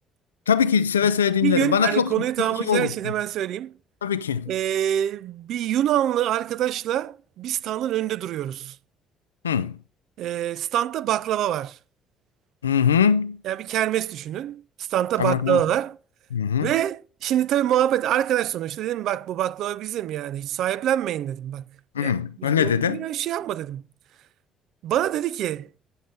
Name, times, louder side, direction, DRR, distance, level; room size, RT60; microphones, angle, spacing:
voice 1, 0.5-2.9 4.0-4.5 9.4-9.8 12.6-13.4 15.2-15.6 16.3-16.7 21.9-23.1, left 7 dB, 80° left, 0.3 m, -22 dB
voice 2, 1.4-3.8 4.5-8.8 10.2-11.8 13.4-16.0 16.6-21.6 22.0-22.1 22.4-23.8 24.8-25.7, right 11 dB, 60° right, 0.3 m, -25 dB
9.5 x 6.2 x 3.4 m
figure-of-eight pair, 45°, 0 cm